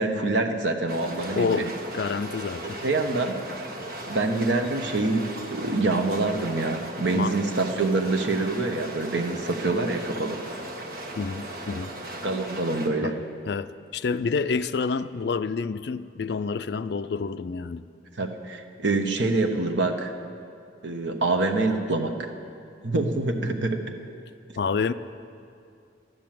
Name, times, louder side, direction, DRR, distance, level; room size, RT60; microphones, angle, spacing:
voice 1, 0.0-1.7 2.8-3.4 4.1-10.4 12.2-13.1 18.2-20.1 20.8-22.3 22.8-23.8, right 2 dB, 75° right, 5 dB, 1.1 m, -26 dB
sound 1, 0.9-12.9, right 1 dB, 50° right, 1.4 m, -37 dB
voice 2, 1.3-2.8 7.1-7.4 11.2-11.9 13.0-13.1 13.4-17.8 24.6-24.9, left 5 dB, 60° left, 13 dB, 0.4 m, -28 dB
12.5 x 10.5 x 7.6 m, 2.4 s
head